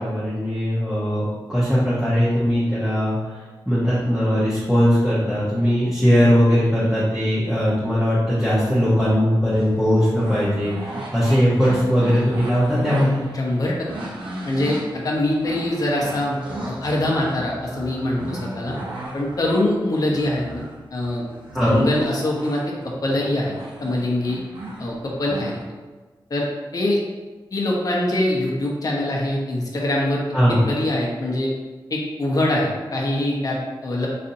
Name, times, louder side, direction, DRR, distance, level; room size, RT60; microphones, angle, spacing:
voice 1, 0.0-3.4 3.7-13.2 21.5-21.8 30.3-30.6, equal, 5° right, -11 dB, 0.9 m, -19 dB
sound 1, 9.5-25.6, right 1 dB, 75° right, 0.7 m, -36 dB
voice 2, 13.3-13.9 14.4-18.7 19.1-20.6 20.9-21.3 21.7-23.5 23.8-24.4 24.8-25.5 26.3-27.0 27.5-30.2 30.5-31.5 31.9-34.1, left 1 dB, 45° left, -3 dB, 0.7 m, -23 dB
4.1 x 2.6 x 2.6 m, 1.3 s
wide cardioid pair, 110°, 9 cm